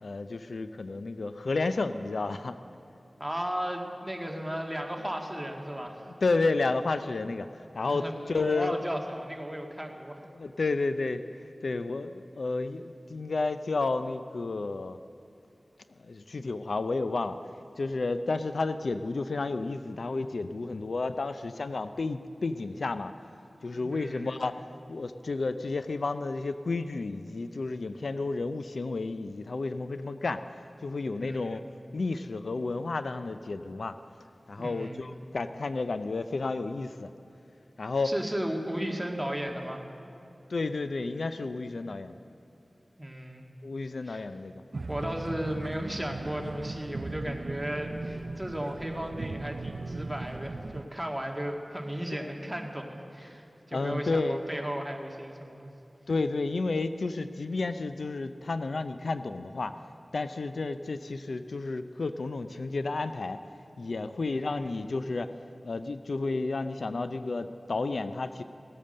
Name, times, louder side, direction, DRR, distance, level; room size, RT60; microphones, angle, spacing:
voice 1, 0.0-2.6 6.2-8.8 10.3-15.0 16.0-23.1 23.6-30.4 30.8-31.6 31.9-34.0 34.5-37.1 37.8-38.1 40.5-42.2 43.6-44.6 52.1-52.3 53.7-54.4 56.1-59.8 60.1-63.4 63.8-65.3 65.6-68.4, left 3 dB, 80° left, 11 dB, 0.4 m, -31 dB
voice 2, 3.2-6.1 7.9-10.2 23.7-24.3 31.3-31.6 34.6-35.0 38.0-39.8 43.0-43.4 44.1-44.2 44.9-55.7 64.2-64.8, equal, 10° right, 1 dB, 1.9 m, -35 dB
sound 1, 44.7-50.9, right 3 dB, 70° right, 0.4 m, -38 dB
17.0 x 8.8 x 6.6 m, 2.7 s
cardioid pair, 40°, 0 cm